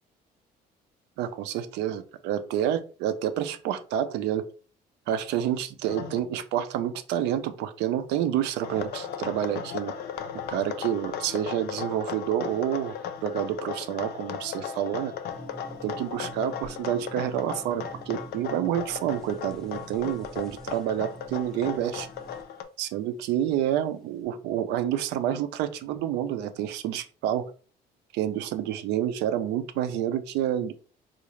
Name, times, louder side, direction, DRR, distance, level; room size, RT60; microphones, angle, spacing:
voice 1, 1.2-4.5 5.1-9.9 10.5-12.9 13.2-15.1 15.8-22.1 22.8-27.5 28.1-30.7, right 10 dB, 90° right, 11 dB, 0.4 m, -28 dB
sound 1, 5.9-6.2 8.6-22.6, left 8 dB, 65° left, 0.5 m, -36 dB
sound 2, 15.3-22.4, right 3 dB, 5° left, 0.6 m, -46 dB
3.7 x 2.4 x 3.0 m, 0.39 s
cardioid pair, 110°, 17 cm